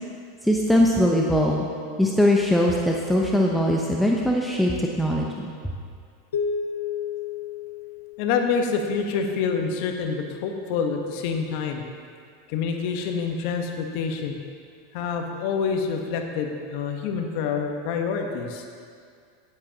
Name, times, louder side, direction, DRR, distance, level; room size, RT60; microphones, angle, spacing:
voice 1, 0.4-1.7 2.0-5.5, left 1 dB, ahead, -2 dB, 0.8 m, -21 dB
sound 1, 6.3-8.9, left 6 dB, 85° left, 0.7 m, -31 dB
voice 2, 8.2-11.8 12.5-14.4 14.9-18.6, left 5 dB, 60° left, 3 dB, 1.2 m, -27 dB
16.5 x 8.0 x 2.9 m, 2.2 s
hypercardioid pair, 105°, 0 cm